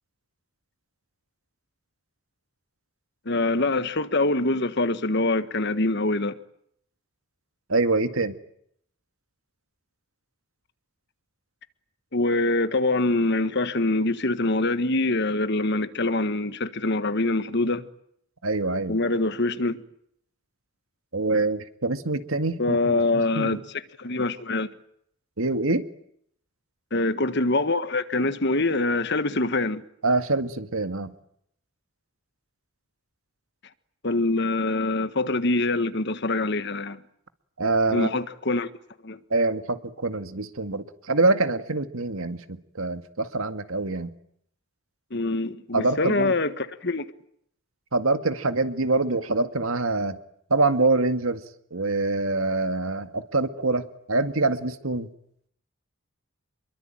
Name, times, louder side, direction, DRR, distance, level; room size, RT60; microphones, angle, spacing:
voice 1, 3.2-6.3 12.1-17.9 18.9-19.8 22.6-23.6 24.0-24.7 26.9-29.8 34.0-37.0 37.9-38.7 39.0-39.2 45.1-47.0, left 2 dB, 55° left, 1.5 m, -24 dB
voice 2, 7.7-8.3 18.4-19.0 21.1-23.6 25.4-25.8 30.0-31.1 37.6-38.1 39.3-44.1 45.7-46.3 47.9-50.2 50.5-51.4 51.7-55.1, right 3 dB, 85° right, 2.0 m, -25 dB
27.5 x 23.0 x 9.0 m
head